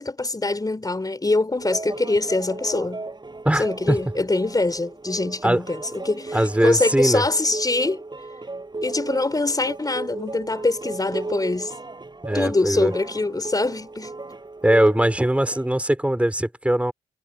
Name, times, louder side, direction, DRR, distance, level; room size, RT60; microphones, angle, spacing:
voice 1, 0.0-3.0 3.6-8.0 8.8-11.7 12.3-14.2, left 2 dB, 25° left, 3.9 m, -24 dB
sound 1, 1.6-15.7, right 3 dB, 30° right, 6.8 m, -35 dB
voice 2, 3.4-4.0 5.4-5.6 6.3-7.2 12.2-12.9 14.6-16.9, right 1 dB, 10° right, 4.5 m, -20 dB
supercardioid pair, 45°, 15 cm